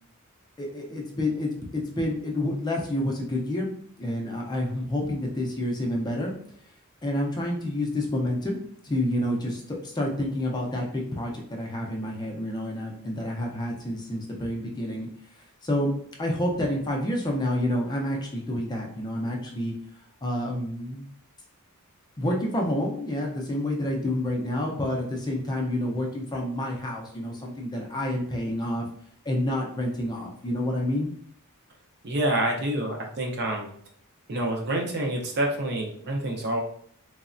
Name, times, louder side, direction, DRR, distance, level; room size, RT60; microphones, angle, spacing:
voice 1, 0.6-6.3 7.0-8.6 8.8-15.1 15.6-15.9 16.2-19.7 20.2-21.1 22.2-28.9 29.3-31.1, left 1 dB, 20° left, -1 dB, 0.4 m, -29 dB
voice 2, 32.0-33.7 34.3-36.6, right 1 dB, 50° right, 1 dB, 0.5 m, -27 dB
3.1 x 2.0 x 2.5 m, 0.62 s
head